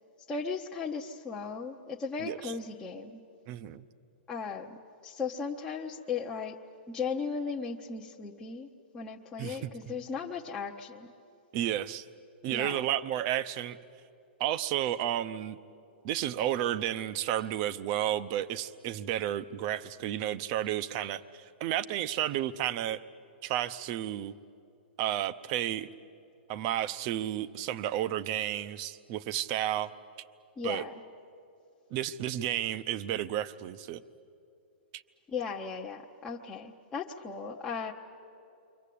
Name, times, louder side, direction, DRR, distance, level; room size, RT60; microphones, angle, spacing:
voice 1, 0.3-3.2 4.3-4.8 5.0-6.6 6.9-8.7 8.9-11.1 12.5-12.8 30.6-30.9 35.3-37.9, left 5 dB, 15° left, -2 dB, 0.8 m, -36 dB
voice 2, 2.2-2.5 3.5-3.9 9.4-9.9 11.5-12.0 12.4-13.8 14.4-15.6 16.0-23.0 23.4-24.3 25.0-25.9 26.5-29.9 30.6-30.8 31.9-34.0 34.9-35.0, right 12 dB, 35° right, 14 dB, 0.7 m, -32 dB
29.0 x 24.5 x 8.5 m, 2.6 s
hypercardioid pair, 160°, 6 cm